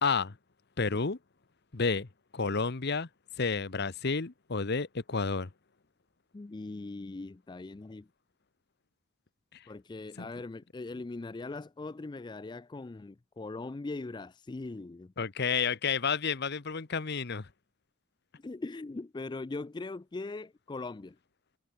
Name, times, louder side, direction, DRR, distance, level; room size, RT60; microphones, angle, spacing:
voice 1, 0.0-0.3 0.8-1.2 1.7-2.1 2.3-3.1 3.4-5.5 10.2-10.3 15.2-17.5, left 5 dB, 50° left, 0.9 m, -30 dB
voice 2, 6.3-8.1 9.7-15.1 18.4-21.2, left 3 dB, 20° left, 0.4 m, -40 dB
head